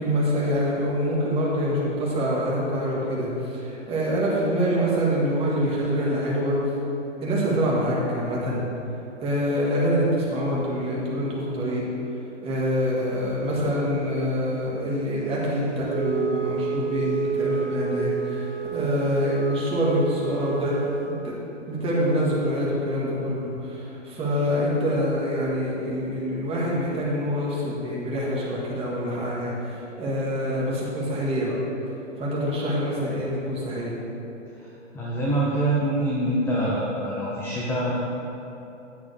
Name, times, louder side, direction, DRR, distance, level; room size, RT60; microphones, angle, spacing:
voice 1, 0.0-6.6 7.2-8.7 9.2-11.9 12.4-21.3 21.7-31.6 32.2-34.0, equal, 15° right, -5 dB, 1.9 m, -25 dB
Wind instrument woodwind instrument, 15.8-21.1, right 7 dB, 60° right, 1.7 m, -30 dB
voice 2, 34.6-38.0, right 1 dB, 5° left, -6 dB, 0.6 m, -25 dB
9.4 x 9.2 x 3.5 m, 2.9 s
hypercardioid pair, 140°, 37 cm